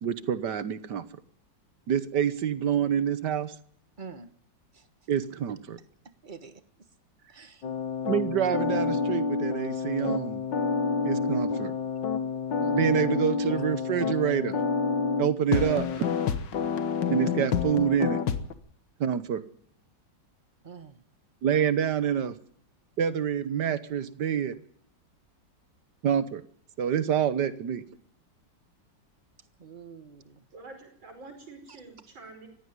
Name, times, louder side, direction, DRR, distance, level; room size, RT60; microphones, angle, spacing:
voice 1, 0.0-1.0 1.9-3.5 5.1-5.8 8.1-10.4 11.0-11.7 12.7-14.6 15.2-16.0 17.1-18.2 19.0-19.4 21.4-22.3 23.0-24.5 26.0-26.4 26.8-27.8, right 8 dB, 65° right, 14 dB, 1.6 m, -27 dB
voice 2, 4.0-4.3 4.7-4.9 6.2-6.6 7.3-7.6 12.6-13.0 20.6-21.0 29.6-30.4, right 5 dB, 30° right, 11 dB, 1.2 m, -46 dB
sound 1, 7.6-18.5, left 5 dB, 70° left, 1.9 m, -28 dB
voice 3, 30.5-32.5, right 3 dB, 85° right, 5 dB, 6.0 m, -47 dB
20.0 x 15.5 x 9.6 m, 0.65 s
omnidirectional pair, 2.1 m